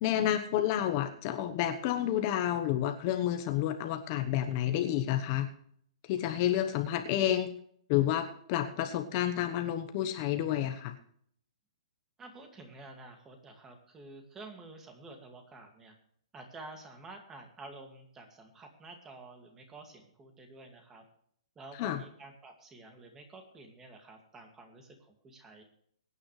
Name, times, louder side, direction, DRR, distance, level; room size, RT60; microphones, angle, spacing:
voice 1, 0.0-5.5 6.1-7.5 7.9-10.9 21.8-22.0, left 11 dB, 30° left, 7 dB, 1.1 m, -30 dB
voice 2, 12.2-16.0 16.3-21.0 21.6-25.6, right 2 dB, 10° right, 4 dB, 2.2 m, -50 dB
23.0 x 9.6 x 3.3 m, 0.65 s
hypercardioid pair, 160°, 3 cm